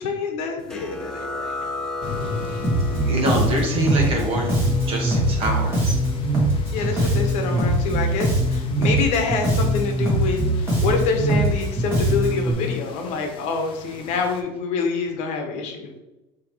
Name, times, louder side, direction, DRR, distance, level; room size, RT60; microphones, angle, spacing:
voice 1, 0.0-1.5 6.7-16.0, left 4 dB, 60° left, 3 dB, 1.0 m, -26 dB
sound 1, 0.7-7.9, left 2 dB, 5° left, 0.5 m, -35 dB
sound 2, 2.0-14.4, left 4 dB, 40° left, 0.7 m, -38 dB
Bass guitar, 2.6-12.5, right 1 dB, 15° right, 1.6 m, -21 dB
voice 2, 3.1-4.5 4.9-6.0 6.8-7.1 7.5-7.6, right 1 dB, 45° right, 0 dB, 1.4 m, -25 dB
5.3 x 3.1 x 3.1 m, 0.98 s
cardioid pair, 135°, 13 cm